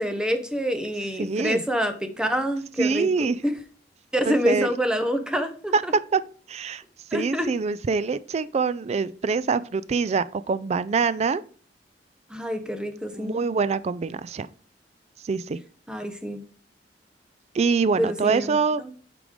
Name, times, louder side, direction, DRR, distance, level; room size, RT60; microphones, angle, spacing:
voice 1, 0.0-3.5 4.1-5.9 7.1-7.5 12.3-13.4 15.9-16.4 18.0-18.9, equal, 5° right, 0.8 m, -27 dB
voice 2, 1.2-1.6 2.8-3.4 4.3-4.7 5.7-5.8 6.1-6.2 6.5-6.8 7.1-11.4 13.2-14.5 15.2-15.6 17.5-18.8, right 5 dB, 40° right, 0.3 m, -24 dB
8.5 x 5.0 x 3.7 m
head